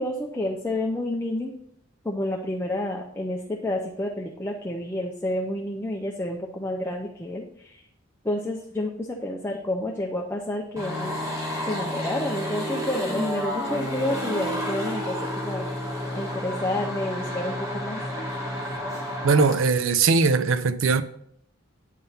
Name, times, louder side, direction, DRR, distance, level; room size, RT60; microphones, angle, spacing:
voice 1, 0.0-1.5 2.0-7.8 8.2-11.2 11.7-15.2 15.4-15.7 16.1-18.0, left 1 dB, 10° left, 0.6 m, -29 dB
sound 1, 10.8-19.6, equal, 15° right, 1.5 m, -31 dB
voice 2, 19.2-21.0, right 4 dB, 80° right, 0.5 m, -20 dB
9.3 x 3.7 x 5.6 m
head